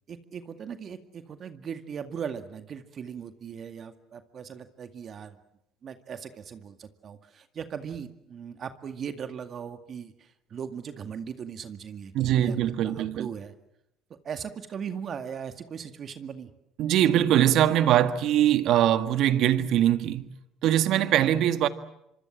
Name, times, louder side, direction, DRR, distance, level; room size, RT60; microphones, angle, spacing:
voice 1, 0.1-5.4 5.8-12.6 12.8-13.5 14.2-16.5, right 7 dB, 50° right, 2.1 m, -38 dB
voice 2, 12.1-13.3 16.8-20.3 20.6-21.7, right 11 dB, 65° right, 1.7 m, -22 dB
26.0 x 25.0 x 7.5 m
hypercardioid pair, 70°, 0 cm